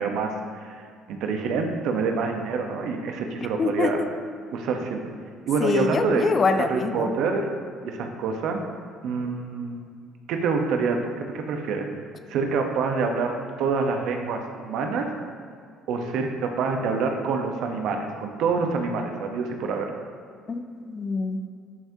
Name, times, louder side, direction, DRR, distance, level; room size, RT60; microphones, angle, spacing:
voice 1, 0.0-4.0 4.5-5.0 5.5-6.3 6.7-7.5 7.8-8.6 9.0-9.9 10.3-11.9 12.3-13.3 13.6-15.1 15.9-19.9, right 4 dB, 70° right, 4 dB, 0.9 m, -26 dB
voice 2, 3.6-4.1 5.6-7.1 20.5-21.4, left 4 dB, 40° left, 8 dB, 0.6 m, -25 dB
12.0 x 5.6 x 2.8 m, 2.3 s
hypercardioid pair, 60°, 0 cm